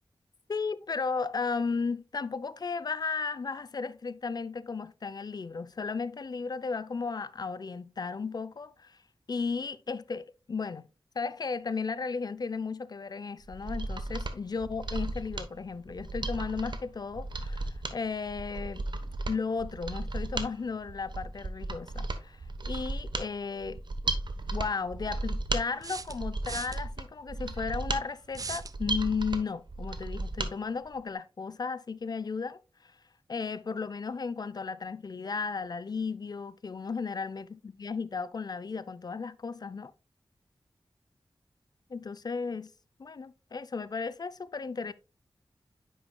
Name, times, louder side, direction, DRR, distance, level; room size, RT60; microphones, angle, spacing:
voice 1, 0.5-9.0 9.3-10.8 11.1-18.9 19.3-22.4 22.7-23.8 24.5-32.9 33.3-39.9 41.9-42.7 43.0-44.9, left 5 dB, 50° left, 0.5 m, -35 dB
Mechanisms, 13.4-30.5 30.9-31.0, right 2 dB, 60° right, 1.0 m, -35 dB
sound 1, 23.7-23.8 25.8-26.8 28.3-28.8, right 4 dB, 40° right, 0.4 m, -38 dB
9.0 x 6.2 x 2.3 m
wide cardioid pair, 80°, 9 cm